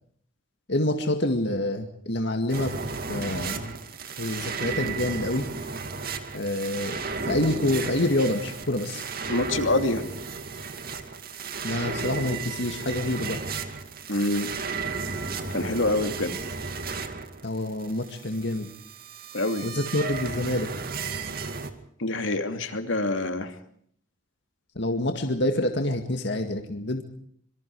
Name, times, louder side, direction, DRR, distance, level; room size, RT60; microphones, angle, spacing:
voice 1, 0.7-2.8 3.1-3.8 4.2-5.4 6.3-7.0 7.3-9.0 11.6-13.4 17.4-18.7 19.6-20.7 24.8-27.0, left 1 dB, 60° left, 5 dB, 2.1 m, -27 dB
sound 1, 2.5-21.7, right 4 dB, 50° right, 2.3 m, -34 dB
voice 2, 9.3-10.0 14.1-14.5 15.5-16.4 19.3-19.7 22.0-23.5, left 2 dB, 80° left, 7 dB, 2.6 m, -26 dB
26.5 x 24.5 x 4.8 m, 0.63 s
head